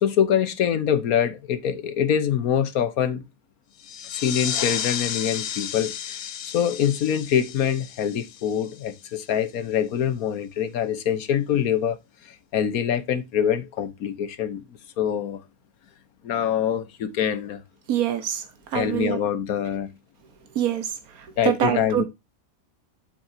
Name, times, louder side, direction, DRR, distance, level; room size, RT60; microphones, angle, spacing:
voice 1, 0.0-3.2 4.1-6.2 6.4-12.0 12.5-14.6 15.0-15.4 16.2-17.6 18.7-19.9 21.4-22.0, left 9 dB, 80° left, 1.4 m, -24 dB
sound 1, 3.8-9.1, left 9 dB, 55° left, 0.8 m, -32 dB
voice 2, 17.9-18.4 18.7-19.2 20.5-20.9 21.4-22.0, right 10 dB, 80° right, 1.6 m, -24 dB
7.7 x 7.5 x 2.7 m
omnidirectional pair, 1.5 m